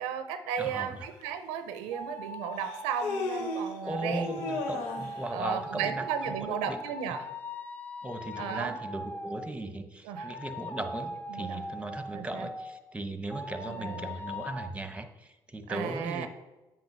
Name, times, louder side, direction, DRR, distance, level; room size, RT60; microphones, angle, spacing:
voice 1, 0.0-4.3 5.3-7.3 8.4-8.7 10.0-10.3 11.3-11.6 12.1-12.5 13.7-14.1 15.7-16.3, right 7 dB, 90° right, 9 dB, 0.6 m, -35 dB
voice 2, 0.6-0.9 3.8-6.8 7.1-7.2 8.0-16.3, right 1 dB, 10° right, 9 dB, 0.9 m, -37 dB
Human voice, 1.2-1.3 2.6-3.8 4.2-5.2, left 3 dB, 85° left, 0.9 m, -35 dB
sound 1, 1.9-9.5 10.2-12.8 13.3-14.7, equal, 15° left, 0.8 m, -40 dB
8.0 x 3.7 x 6.0 m, 1.1 s
supercardioid pair, 60°, 10 cm